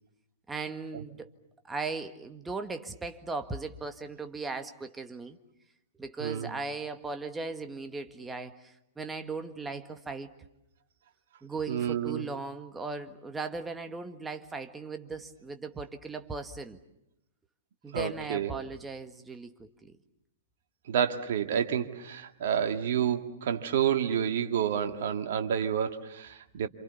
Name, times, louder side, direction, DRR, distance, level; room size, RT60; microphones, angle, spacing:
voice 1, 0.5-1.3 1.6-5.4 6.0-10.3 11.4-16.8 17.8-19.9, right 3 dB, 10° right, 7 dB, 1.8 m, -38 dB
voice 2, 11.7-12.2 17.9-18.6 20.9-26.7, right 8 dB, 55° right, 6 dB, 2.1 m, -29 dB
28.0 x 27.5 x 7.1 m, 0.87 s
figure-of-eight pair, 105°, 0 cm